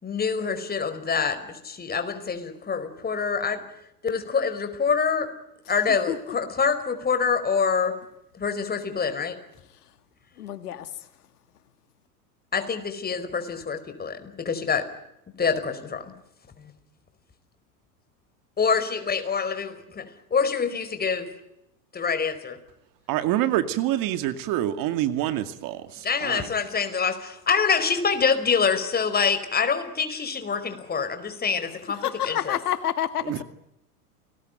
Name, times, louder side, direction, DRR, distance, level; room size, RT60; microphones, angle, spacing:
voice 1, 0.0-3.6 4.0-5.3 5.7-8.0 8.3-9.4 12.5-14.9 15.4-16.1 16.6-16.7 18.6-21.3 21.9-22.6 26.0-32.6, left 5 dB, 20° left, 10 dB, 4.9 m, -26 dB
voice 2, 10.4-10.9 32.0-33.4, left 10 dB, 75° left, 11 dB, 2.0 m, -28 dB
voice 3, 23.1-26.5 33.2-33.4, right 13 dB, 45° right, 10 dB, 2.3 m, -26 dB
29.0 x 20.5 x 9.3 m, 0.85 s
hypercardioid pair, 95°, 46 cm